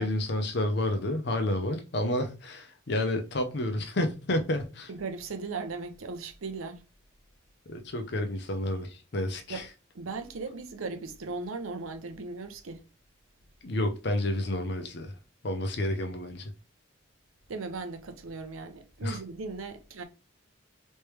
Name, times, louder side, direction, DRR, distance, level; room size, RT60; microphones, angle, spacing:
voice 1, 0.0-4.9 7.7-9.6 13.6-15.1 15.4-16.5 19.0-19.2, left 1 dB, 55° left, 0.7 m, -30 dB
voice 2, 4.9-6.8 9.5-9.7 9.9-12.8 17.5-20.0, right 3 dB, 85° right, 0.6 m, -37 dB
3.2 x 3.1 x 3.2 m
head